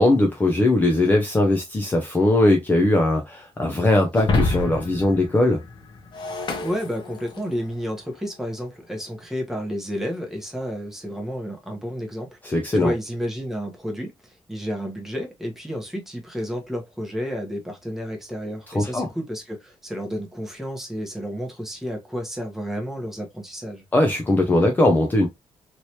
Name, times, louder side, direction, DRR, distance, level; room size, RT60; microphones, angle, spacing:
voice 1, 0.0-5.6 12.4-12.9 18.7-19.1 23.9-25.3, left 2 dB, 15° left, 0.5 m, -20 dB
Shatter, 4.1-7.6, left 2 dB, 50° left, 1.0 m, -27 dB
voice 2, 6.6-23.8, equal, 5° right, 1.0 m, -31 dB
3.1 x 3.0 x 2.7 m
wide cardioid pair, 155°, 10 cm